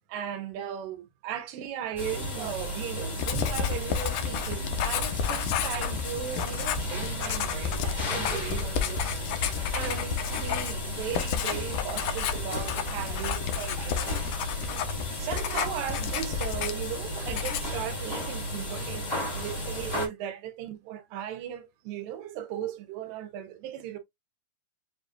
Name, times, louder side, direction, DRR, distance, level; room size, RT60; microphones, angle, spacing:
voice 1, 0.0-14.2 15.1-24.0, right 10 dB, 85° right, 2.5 m, -37 dB
sound 1, 2.0-20.1, left 1 dB, 40° left, 0.5 m, -34 dB
Writing, 3.2-17.0 17.3-17.8, left 9 dB, 75° left, 2.1 m, -31 dB
6.9 x 2.5 x 2.3 m
omnidirectional pair, 4.0 m